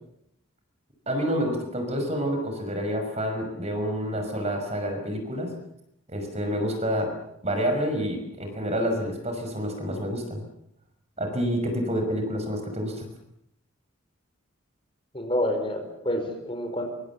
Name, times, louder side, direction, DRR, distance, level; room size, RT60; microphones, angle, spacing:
voice 1, 1.1-5.5 6.1-7.1 7.4-10.4 11.2-13.1, equal, 30° right, 5 dB, 5.6 m, -28 dB
voice 2, 15.1-16.8, left 1 dB, 25° left, 5 dB, 5.0 m, -28 dB
26.5 x 25.0 x 7.3 m, 0.77 s
head